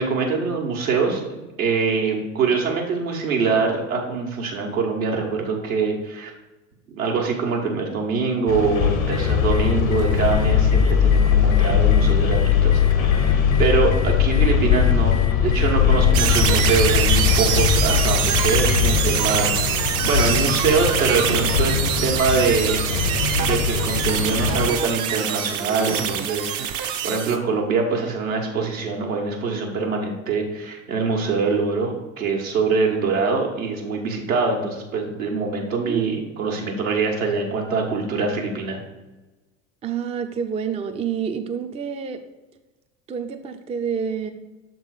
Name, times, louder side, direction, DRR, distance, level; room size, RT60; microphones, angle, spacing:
voice 1, 0.0-6.3 7.0-19.5 19.8-22.8 23.4-38.8, right 4 dB, 80° right, 0 dB, 1.4 m, -24 dB
sound 1, 8.5-24.7, left 5 dB, 80° left, 0.9 m, -24 dB
sound 2, 9.1-19.1, left 9 dB, 40° left, 0.5 m, -20 dB
sound 3, 16.1-27.4, right 9 dB, 50° right, 0.8 m, -24 dB
voice 2, 35.8-36.5 39.8-42.2 43.1-44.3, right 7 dB, 15° right, 8 dB, 0.4 m, -28 dB
6.5 x 3.7 x 4.8 m, 1.1 s
figure-of-eight pair, 70°, 41 cm